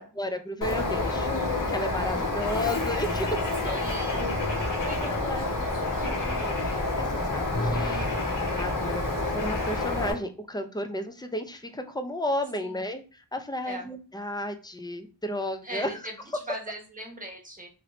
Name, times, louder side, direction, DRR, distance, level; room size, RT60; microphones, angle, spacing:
voice 1, 0.0-3.8 4.1-4.2 4.8-5.4 6.0-6.5 7.0-8.1 8.6-15.9, left 1 dB, 10° left, 7 dB, 0.4 m, -33 dB
Bird, 0.6-10.1, left 2 dB, 50° left, 1.1 m, -28 dB
voice 2, 3.6-4.3 4.9-6.2 12.6-12.9 13.6-13.9 15.6-17.7, right 1 dB, 20° right, 1 dB, 1.0 m, -40 dB
3.0 x 2.6 x 3.1 m, 0.35 s
wide cardioid pair, 50°, 42 cm